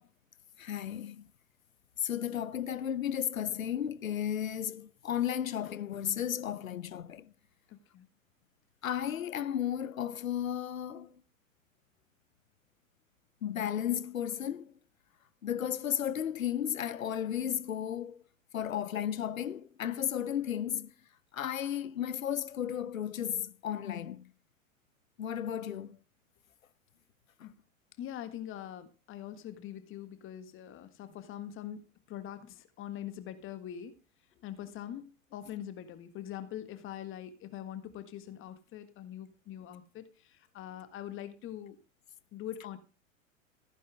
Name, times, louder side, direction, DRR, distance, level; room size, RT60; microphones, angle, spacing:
voice 1, 0.6-1.2 2.0-7.3 8.8-11.1 13.4-14.7 15.4-18.2 18.5-20.9 21.3-24.3 25.2-26.0 27.4-27.5, left 10 dB, 75° left, 1.0 m, -34 dB
voice 2, 7.7-8.1 27.4-27.5 28.0-31.8 32.1-34.0 34.4-41.8 42.3-42.8, left 11 dB, 30° left, 1.6 m, -43 dB
15.0 x 10.5 x 3.4 m
figure-of-eight pair, 95°, 40 cm